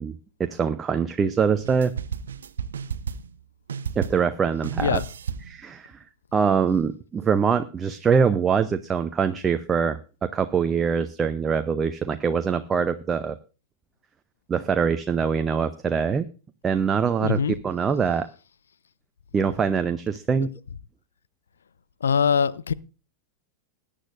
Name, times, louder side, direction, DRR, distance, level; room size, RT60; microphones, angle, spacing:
voice 1, 0.0-1.9 4.0-5.0 5.5-5.9 6.3-13.4 14.5-16.3 16.6-18.3 19.3-20.5, right 6 dB, 20° right, 0.7 m, -24 dB
sound 1, 1.5-3.4 3.7-4.4 4.6-5.6, right 7 dB, 65° right, 0.6 m, -33 dB
voice 2, 17.2-17.5 22.0-22.7, left 6 dB, 70° left, 0.5 m, -22 dB
20.5 x 10.0 x 2.6 m
figure-of-eight pair, 90°, 0 cm